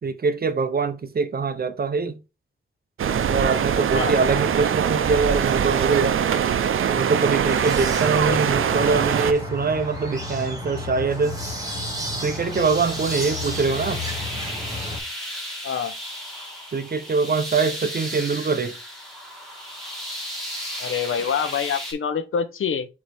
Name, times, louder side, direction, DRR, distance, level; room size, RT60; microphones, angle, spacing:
voice 1, 0.0-2.2 3.3-6.2 6.9-11.4 12.2-14.0 16.7-18.8, right 4 dB, 50° right, 0.9 m, -23 dB
sound 1, 3.0-9.3, right 8 dB, 90° right, 0.6 m, -22 dB
sound 2, 7.4-15.0, left 1 dB, 15° right, 2.3 m, -32 dB
voice 2, 8.3-8.7 15.6-15.9 20.8-22.9, left 7 dB, 85° left, 0.8 m, -26 dB
sound 3, 12.3-21.9, equal, ahead, 3.0 m, -34 dB
4.9 x 4.6 x 4.2 m
wide cardioid pair, 105°, 20 cm